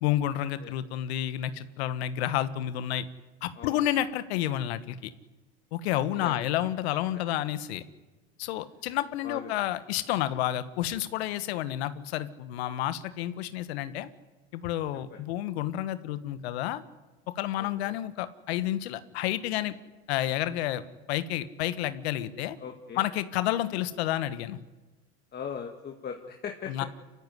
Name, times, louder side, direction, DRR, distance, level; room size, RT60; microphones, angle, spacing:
voice 1, 0.0-3.1 3.4-5.1 5.7-7.8 8.4-14.1 14.5-16.8 17.3-19.7 20.1-20.8 21.1-22.6 22.9-24.6 26.7-26.8, left 13 dB, 80° left, 13 dB, 1.4 m, -30 dB
voice 2, 3.6-3.9 5.9-6.3 9.2-9.5 15.1-15.2 17.6-18.0 22.6-23.0 25.3-26.7, left 7 dB, 30° left, 3 dB, 2.1 m, -39 dB
25.5 x 14.5 x 9.8 m, 1.1 s
supercardioid pair, 105°, 32 cm